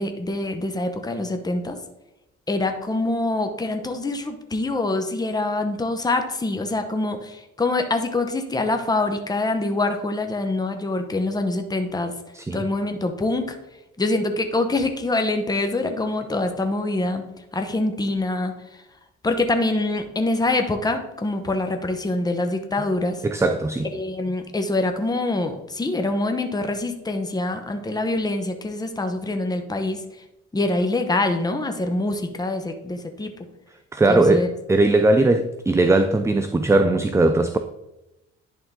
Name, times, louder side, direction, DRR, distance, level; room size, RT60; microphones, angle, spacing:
voice 1, 0.0-1.8 2.5-12.1 12.5-13.5 14.0-17.2 17.5-18.5 19.2-23.2 23.9-30.0 30.5-33.3 34.1-34.5, left 2 dB, 15° left, 0.8 m, -25 dB
voice 2, 12.3-12.7 23.2-23.9 33.9-37.6, right 2 dB, 10° right, 0.3 m, -19 dB
10.5 x 3.7 x 3.6 m
cardioid pair, 90°, 30 cm